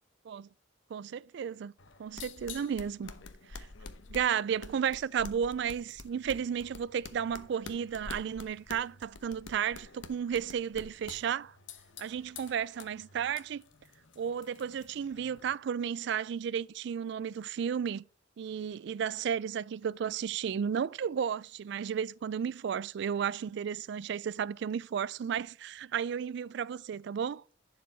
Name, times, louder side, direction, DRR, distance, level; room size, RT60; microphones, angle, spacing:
voice 1, 0.9-1.7 2.0-3.1 3.5-3.7 4.1-11.5 12.0-13.6 14.2-18.0 18.4-27.4, right 7 dB, 65° right, 0.3 m, -33 dB
sound 1, 1.8-15.6, left 4 dB, 75° left, 0.9 m, -49 dB
11.0 x 4.8 x 4.5 m
head